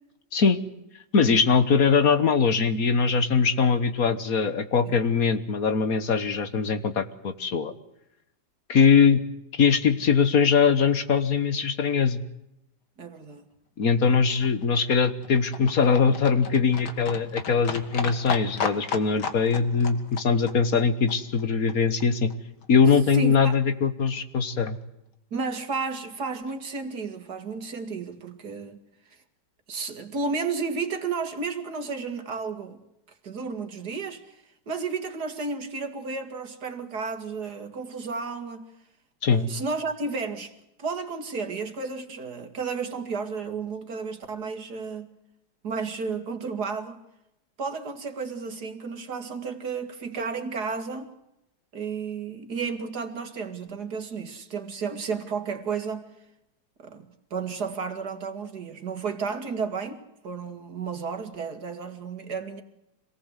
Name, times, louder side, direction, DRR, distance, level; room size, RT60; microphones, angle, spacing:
voice 1, 1.1-7.7 8.7-9.2 9.6-12.2 13.8-22.3 22.7-24.8 39.2-39.4, left 5 dB, 60° left, 1.8 m, -22 dB
voice 2, 13.0-13.4 23.1-23.6 25.3-28.8 29.7-32.8 33.2-38.7 39.3-40.5 40.8-45.1 45.6-47.0 47.6-51.1 51.7-56.0 56.8-62.6, right 4 dB, 70° right, 2.7 m, -32 dB
Livestock farm animals working animals, 13.8-22.0 22.3-22.4 22.6-22.7 22.9-23.0 23.2-23.3 23.5-23.6 23.9-24.0 24.2-24.3 24.5-24.6, left 5 dB, 90° left, 2.3 m, -35 dB
26.0 x 18.5 x 8.2 m
omnidirectional pair, 1.8 m